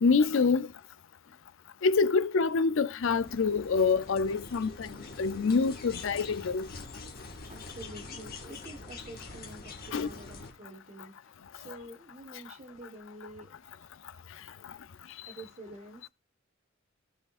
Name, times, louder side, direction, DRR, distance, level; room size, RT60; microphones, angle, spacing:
voice 1, 0.0-0.7 1.8-6.7 9.9-10.1, left 4 dB, 70° left, 0.5 m, -26 dB
sound 1, 3.0-10.5, left 3 dB, 50° left, 1.7 m, -45 dB
voice 2, 7.5-13.5 15.3-16.1, right 1 dB, 35° right, 1.3 m, -48 dB
15.0 x 5.1 x 2.4 m
head